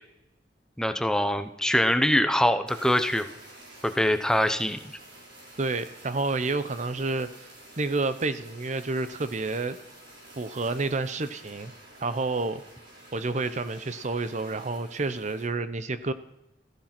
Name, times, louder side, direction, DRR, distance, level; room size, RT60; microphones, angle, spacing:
voice 1, 0.8-3.3 3.8-4.8, left 1 dB, 5° left, 9 dB, 0.8 m, -23 dB
Fire, 2.7-15.5, right 1 dB, 70° right, 5.6 m, -50 dB
voice 2, 5.6-7.3 7.8-9.8 10.4-11.7 12.0-12.6 13.1-16.1, right 3 dB, 45° right, 12 dB, 0.7 m, -29 dB
15.0 x 14.5 x 6.0 m, 0.88 s
head